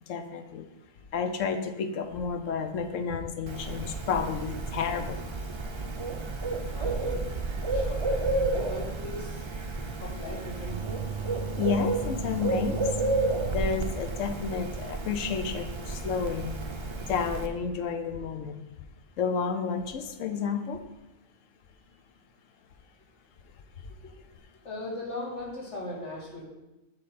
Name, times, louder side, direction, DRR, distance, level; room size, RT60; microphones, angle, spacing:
voice 1, 0.1-0.7 1.1-5.2 11.6-12.8 13.5-16.6 17.1-18.6 19.2-20.8, left 6 dB, 85° left, 8 dB, 1.0 m, -31 dB
Bird, 3.5-17.5, right 2 dB, 45° right, 0.4 m, -31 dB
voice 2, 6.6-8.2 8.5-9.6 9.9-10.8 21.9-22.0 23.9-24.1 24.6-26.4, left 2 dB, 65° left, -4 dB, 2.1 m, -39 dB
7.8 x 3.4 x 5.7 m, 0.98 s
omnidirectional pair, 1.3 m